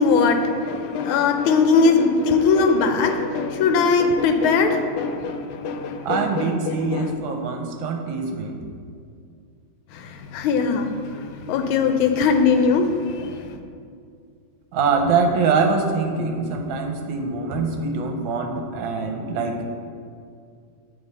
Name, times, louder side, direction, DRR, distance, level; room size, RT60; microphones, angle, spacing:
voice 1, 0.0-7.1 9.9-13.5, left 4 dB, 90° left, 6 dB, 1.4 m, -21 dB
voice 2, 6.0-8.6 14.7-19.6, right 4 dB, 75° right, 3 dB, 1.4 m, -24 dB
8.8 x 3.4 x 4.1 m, 2.3 s
omnidirectional pair, 2.2 m